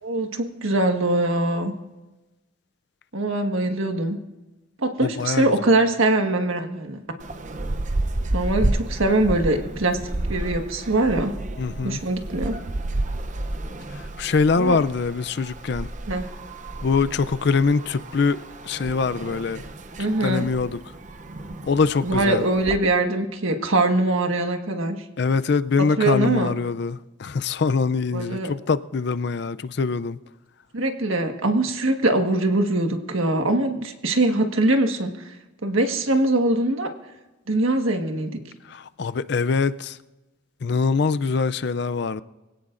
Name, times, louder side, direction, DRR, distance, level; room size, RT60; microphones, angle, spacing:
voice 1, 0.0-1.7 3.1-4.2 4.8-7.0 8.3-10.0 10.3-11.3 11.8-12.6 14.5-14.8 16.1-16.3 20.0-20.5 22.0-25.0 25.8-26.5 28.1-28.5 30.7-35.3 35.6-36.9 37.5-38.4, right 2 dB, 90° right, 1.5 m, -22 dB
voice 2, 5.0-5.5 11.6-12.0 14.2-15.9 16.8-18.4 18.7-19.6 20.2-20.7 21.7-22.4 25.2-30.2 39.0-39.9 40.6-42.2, left 4 dB, 55° left, 0.4 m, -23 dB
sound 1, 7.2-22.8, right 2 dB, 35° right, 0.7 m, -31 dB
24.0 x 17.0 x 2.5 m
head